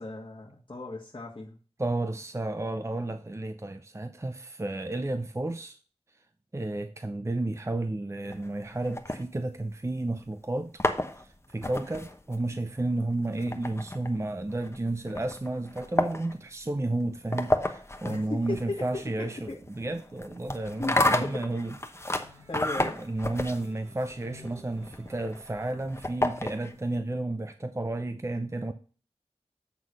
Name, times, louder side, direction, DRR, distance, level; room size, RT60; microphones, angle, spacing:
voice 1, 0.0-1.6 18.0-19.6 20.8-21.4 22.5-23.0, left 2 dB, 50° left, 1.5 m, -36 dB
voice 2, 1.8-5.8 6.5-10.7 11.2-21.7 22.1-22.4 22.8-28.7, right 2 dB, 25° right, 0.6 m, -32 dB
sound 1, 8.3-9.9 10.5-26.9, left 1 dB, 25° left, 0.9 m, -32 dB
sound 2, 16.7-25.7, equal, 80° right, 4.3 m, -57 dB
8.2 x 3.7 x 6.2 m
wide cardioid pair, 45°, 11 cm